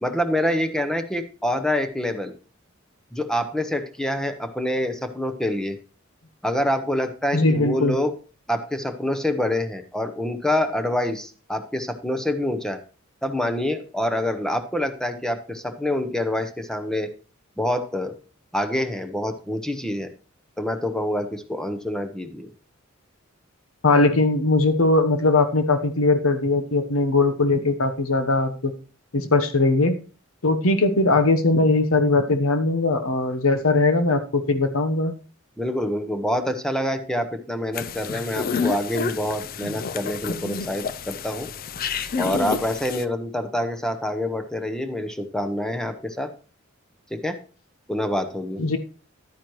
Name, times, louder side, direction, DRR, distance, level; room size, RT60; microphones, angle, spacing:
voice 1, 0.0-2.3 3.1-5.8 6.4-8.1 8.5-12.8 13.2-17.1 17.6-18.1 18.5-20.1 20.6-22.5 35.6-41.5 42.2-46.3 47.1-47.4 47.9-48.6, left 1 dB, 5° left, 7 dB, 0.8 m, -26 dB
voice 2, 7.3-8.0 23.8-28.7 29.1-30.0 30.4-35.1 48.6-48.8, left 2 dB, 80° left, 9 dB, 1.0 m, -20 dB
sound 1, 37.7-43.0, left 5 dB, 45° left, 0.5 m, -29 dB
11.0 x 9.2 x 3.1 m, 0.37 s
head